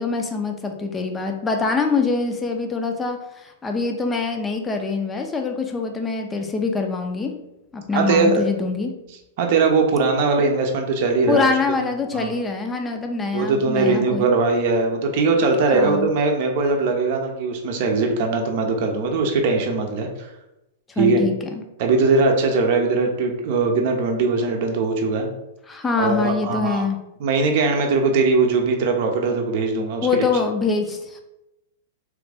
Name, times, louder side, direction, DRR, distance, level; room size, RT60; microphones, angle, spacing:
voice 1, 0.0-7.3 7.7-8.9 11.3-14.3 15.7-16.1 21.0-21.3 25.7-27.0 30.0-31.2, left 4 dB, 15° left, 4 dB, 0.5 m, -24 dB
voice 2, 7.9-8.4 9.4-11.8 12.1-12.3 13.3-20.3 21.0-21.2 21.8-25.3 26.0-26.8 27.2-30.1, right 3 dB, 55° right, 3 dB, 0.6 m, -20 dB
3.1 x 2.4 x 3.4 m, 0.92 s
hypercardioid pair, 120°, 0 cm